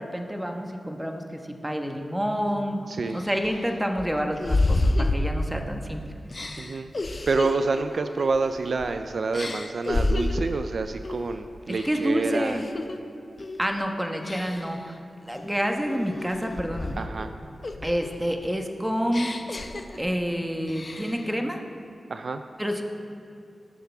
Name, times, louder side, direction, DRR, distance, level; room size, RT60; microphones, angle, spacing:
voice 1, 0.0-2.8 3.1-6.0 11.8-12.7 13.6-17.0 17.8-19.3 20.0-21.6 22.6-22.8, equal, 10° right, 3 dB, 1.2 m, -28 dB
sound 1, 2.5-2.6 3.1-5.8 6.3-9.0 9.3-10.6 11.0-11.3 11.7-13.0 13.4-13.7 14.2-14.8 15.3-17.3 17.6-20.3 20.7-21.3, left 2 dB, 45° left, 0.7 m, -30 dB
voice 2, 2.9-3.2 6.6-6.9 7.3-12.6 17.0-17.3 22.1-22.4, right 4 dB, 70° right, 8 dB, 0.4 m, -28 dB
19.5 x 6.6 x 3.5 m, 2.8 s
cardioid pair, 60°, 0 cm